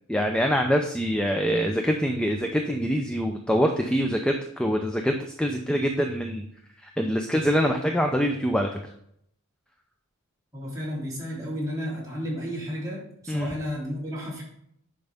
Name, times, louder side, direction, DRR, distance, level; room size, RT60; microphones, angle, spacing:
voice 1, 0.1-6.5 6.8-8.8 13.3-13.5, equal, 5° left, 3 dB, 0.5 m, -25 dB
voice 2, 10.5-14.4, equal, 15° right, -6 dB, 3.2 m, -32 dB
10.5 x 5.4 x 3.5 m, 0.72 s
head